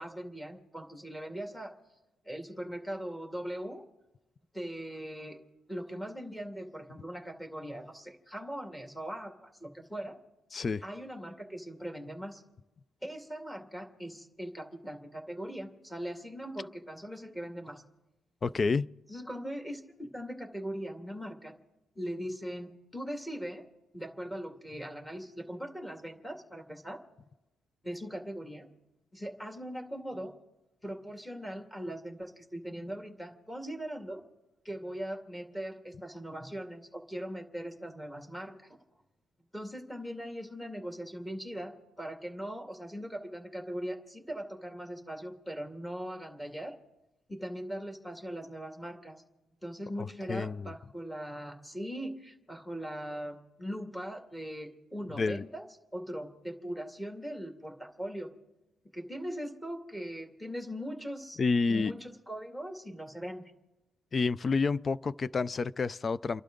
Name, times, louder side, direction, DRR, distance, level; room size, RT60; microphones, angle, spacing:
voice 1, 0.0-1.7 2.2-3.9 4.5-5.4 5.7-10.2 10.8-12.4 13.0-17.8 19.1-21.5 22.0-23.6 23.9-27.0 27.8-28.7 29.1-30.3 30.8-34.2 34.6-38.6 39.5-46.7 47.3-49.2 49.6-55.7 55.9-58.3 58.9-61.4 61.7-63.4, equal, 10° left, 2.3 m, -40 dB
voice 2, 10.5-10.8 18.4-18.9 50.0-50.7 55.2-55.4 61.4-61.9 64.1-66.4, left 4 dB, 35° left, 0.4 m, -29 dB
29.5 x 11.5 x 3.9 m
cardioid pair, 90°, 0 cm